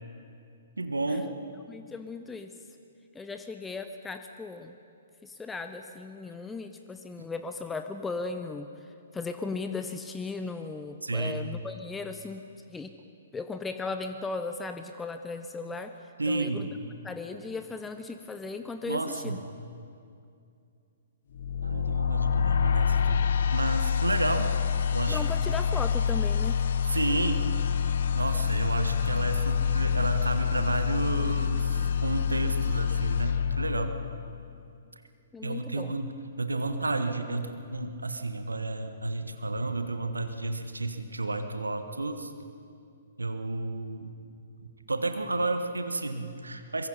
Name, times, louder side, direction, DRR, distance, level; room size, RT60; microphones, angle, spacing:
voice 1, 0.8-1.3 11.0-11.5 16.2-16.7 18.8-19.4 21.6-24.5 24.9-25.3 26.9-27.5 28.1-33.9 35.4-42.3 43.2-44.1 44.6-46.9, right 2 dB, 80° right, 8 dB, 1.5 m, -31 dB
voice 2, 1.7-2.5 3.1-4.7 5.2-8.7 9.1-12.4 12.7-12.9 13.3-15.9 16.3-16.7 17.0-19.4 25.1-26.6 35.3-35.9, left 4 dB, 10° left, 7 dB, 0.7 m, -37 dB
sound 1, 21.3-34.4, left 7 dB, 55° left, 1.0 m, -27 dB
24.0 x 22.5 x 5.6 m, 2.5 s
figure-of-eight pair, 120°, 0 cm